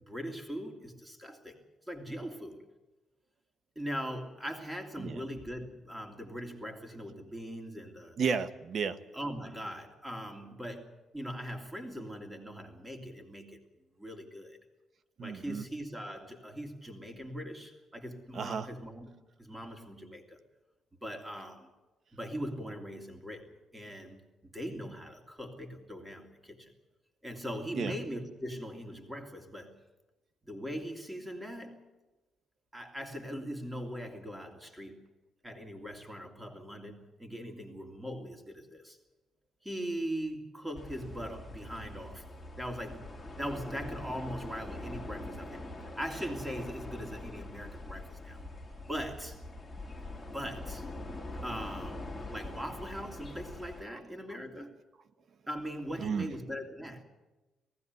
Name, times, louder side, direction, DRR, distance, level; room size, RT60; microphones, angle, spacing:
voice 1, 0.1-2.6 3.7-8.2 9.1-13.6 14.0-14.6 15.2-19.1 19.4-20.4 21.0-21.7 22.1-26.7 27.2-29.7 30.4-31.8 32.7-35.0 35.4-39.0 39.6-42.2 42.6-48.4 48.8-49.4 50.3-50.9 51.4-54.8 55.5-57.0, equal, 10° right, 4 dB, 2.9 m, -40 dB
voice 2, 8.2-9.0 15.2-15.7 18.3-18.7 27.7-27.9 54.3-54.4 56.0-56.3, right 6 dB, 55° right, 12 dB, 1.1 m, -33 dB
sound 1, 40.7-53.8, left 2 dB, 10° left, 2.3 m, -43 dB
19.0 x 16.0 x 9.6 m, 1.1 s
cardioid pair, 90°, 0 cm